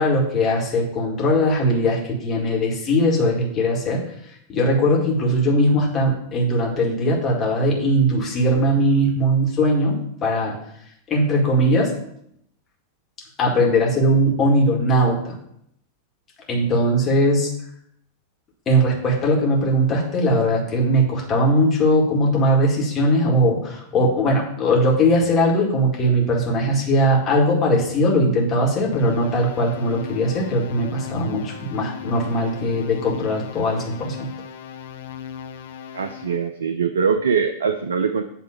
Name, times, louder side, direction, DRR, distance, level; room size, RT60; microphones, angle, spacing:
voice 1, 0.0-4.0 4.5-10.6 11.1-12.0 13.4-15.3 16.5-17.5 18.7-34.3, equal, 25° left, -2 dB, 2.2 m, -20 dB
sound 1, 28.9-36.5, left 8 dB, 55° left, 0.6 m, -37 dB
voice 2, 35.9-38.2, right 6 dB, 70° right, 10 dB, 0.4 m, -22 dB
8.7 x 3.6 x 6.7 m, 0.73 s
figure-of-eight pair, 90°, 0 cm